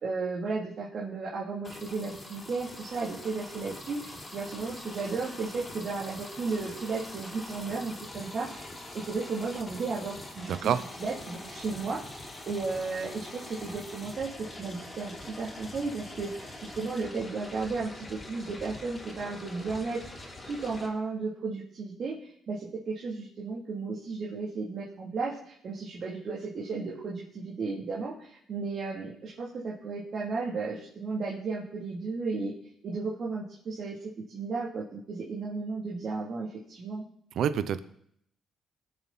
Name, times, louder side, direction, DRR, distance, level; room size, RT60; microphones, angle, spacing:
voice 1, 0.0-8.7 8.9-12.0 12.5-20.1 20.4-32.5 32.8-37.0, right 4 dB, 55° right, -5 dB, 3.0 m, -34 dB
sound 1, 1.6-20.9, left 1 dB, 25° left, 3.6 m, -44 dB
voice 2, 10.5-10.8 37.4-37.8, right 8 dB, 70° right, 13 dB, 0.7 m, -27 dB
20.0 x 7.6 x 4.2 m, 0.68 s
cardioid pair, 90°, 0 cm